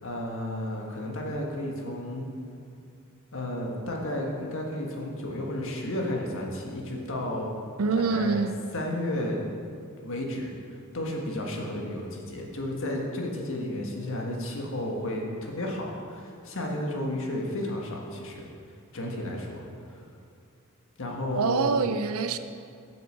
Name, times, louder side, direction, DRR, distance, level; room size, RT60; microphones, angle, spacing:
voice 1, 0.0-2.3 3.3-7.6 7.9-8.5 8.7-9.4 10.0-10.6 10.9-18.5 18.9-20.0 21.0-21.8, left 1 dB, 65° left, 0 dB, 1.5 m, -32 dB
voice 2, 7.8-8.6 21.3-22.4, right 4 dB, 70° right, 9 dB, 0.5 m, -25 dB
7.7 x 6.8 x 6.6 m, 2.3 s
head